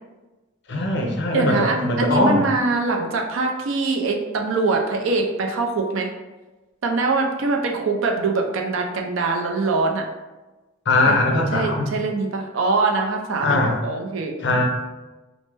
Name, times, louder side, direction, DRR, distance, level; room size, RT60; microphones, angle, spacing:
voice 1, 0.7-2.5 10.9-11.9 13.4-13.8 14.4-14.6, left 2 dB, 55° left, 1 dB, 0.5 m, -20 dB
voice 2, 1.3-6.1 6.8-10.1 11.1-11.2 11.5-14.3, right 3 dB, 70° right, 3 dB, 0.4 m, -23 dB
3.1 x 2.1 x 3.2 m, 1.1 s
head